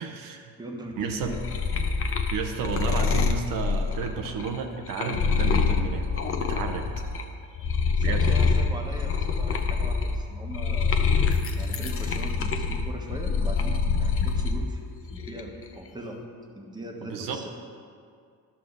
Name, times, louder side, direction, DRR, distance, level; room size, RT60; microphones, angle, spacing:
voice 1, 0.0-0.5 1.0-1.3 2.3-6.1 6.4-6.9 8.0-8.5 17.0-17.4, right 6 dB, 65° right, 4 dB, 0.8 m, -32 dB
voice 2, 0.6-1.4 1.9-2.1 7.9-11.0 11.6-14.8 15.1-16.2 16.5-17.5, right 1 dB, 10° right, 1 dB, 1.2 m, -40 dB
sound 1, 1.0-7.2 7.6-14.6 15.0-15.6, left 5 dB, 40° left, 0.7 m, -26 dB
11.5 x 6.6 x 3.9 m, 2.2 s
cardioid pair, 110°, 35 cm